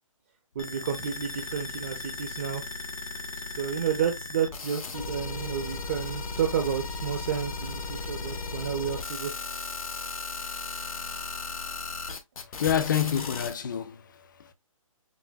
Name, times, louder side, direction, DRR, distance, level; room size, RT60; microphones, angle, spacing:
voice 1, 0.5-2.6 3.5-9.3, right 8 dB, 25° right, 0.4 m, -31 dB
sound 1, 0.6-13.5, left 3 dB, 80° left, 1.0 m, -36 dB
voice 2, 12.6-14.5, left 9 dB, 35° left, 0.4 m, -28 dB
6.1 x 2.1 x 2.2 m
hypercardioid pair, 165°, 18 cm